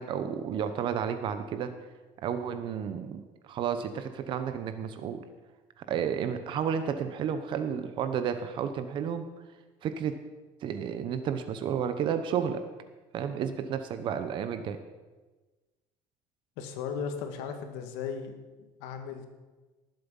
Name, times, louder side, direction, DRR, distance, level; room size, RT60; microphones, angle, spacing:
voice 1, 0.0-1.7 2.2-5.2 5.8-9.2 9.8-10.1 10.6-12.6 13.1-14.8, right 8 dB, 50° right, 9 dB, 1.0 m, -32 dB
voice 2, 16.6-18.3 18.8-19.3, left 6 dB, 80° left, 6 dB, 1.8 m, -36 dB
19.0 x 7.7 x 5.5 m, 1.2 s
cardioid pair, 140°, 11 cm